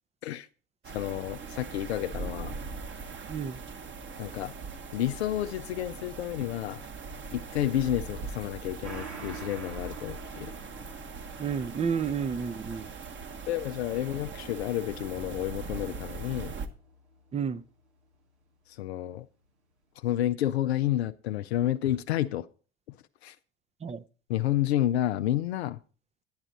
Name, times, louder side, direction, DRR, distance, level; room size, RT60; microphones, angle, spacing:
sound 1, 0.8-16.7, right 4 dB, 35° right, 1.3 m, -41 dB
voice 1, 0.9-2.6 4.2-4.5 4.9-6.8 7.3-10.5 13.5-16.5 18.7-19.3 20.0-22.5 22.9-23.0 23.2-23.4 24.3-25.8, left 13 dB, 80° left, 0.5 m, -30 dB
voice 2, 3.3-3.6 11.4-12.9 17.3-17.6 23.8-24.0, right 6 dB, 20° right, 0.6 m, -31 dB
Gong, 8.8-17.8 18.1-18.2, right 3 dB, 85° right, 1.5 m, -49 dB
10.5 x 9.9 x 4.0 m
figure-of-eight pair, 65°, 32 cm